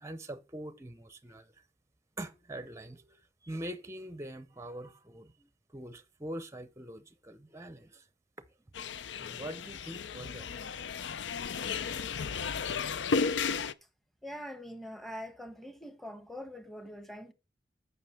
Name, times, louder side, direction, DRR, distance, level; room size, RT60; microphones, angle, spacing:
voice 1, 0.0-1.5 2.2-8.0 9.2-10.5, right 1 dB, 15° right, 0.7 m, -43 dB
sound 1, 8.7-13.7, left 5 dB, 75° left, 0.5 m, -34 dB
voice 2, 14.2-17.3, equal, ahead, 1.1 m, -43 dB
8.9 x 5.8 x 5.8 m
head